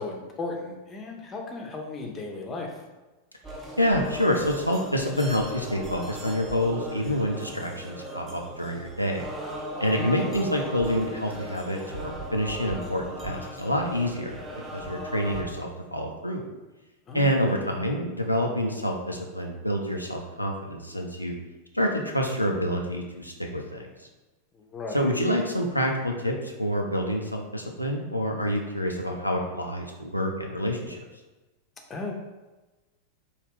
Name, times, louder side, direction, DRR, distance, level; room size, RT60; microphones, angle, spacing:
voice 1, 0.0-2.7 9.8-10.1 17.1-17.6 24.6-25.1 31.9-32.1, left 3 dB, 25° left, 1 dB, 0.6 m, -35 dB
sound 1, 3.4-15.4, equal, 20° right, 0.6 m, -38 dB
voice 2, 3.8-9.3 9.8-14.4 14.7-16.4 17.1-21.3 21.7-23.9 24.9-31.0, equal, 90° left, 1 dB, 0.3 m, -27 dB
3.1 x 2.3 x 3.5 m, 1.1 s
figure-of-eight pair, 90°, 0 cm